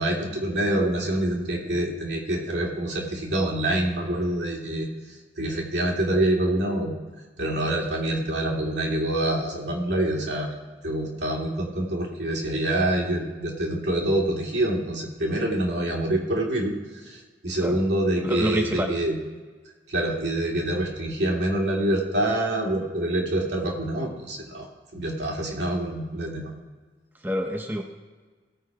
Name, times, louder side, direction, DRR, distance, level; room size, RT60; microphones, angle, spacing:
voice 1, 0.0-4.9 5.4-7.0 7.4-10.6 10.8-16.7 17.0-19.2 19.9-24.7 24.9-26.5, right 1 dB, 80° right, -1 dB, 2.3 m, -26 dB
voice 2, 18.2-18.9 27.2-27.8, equal, 10° right, 3 dB, 0.7 m, -27 dB
16.5 x 6.0 x 4.7 m, 1.4 s
head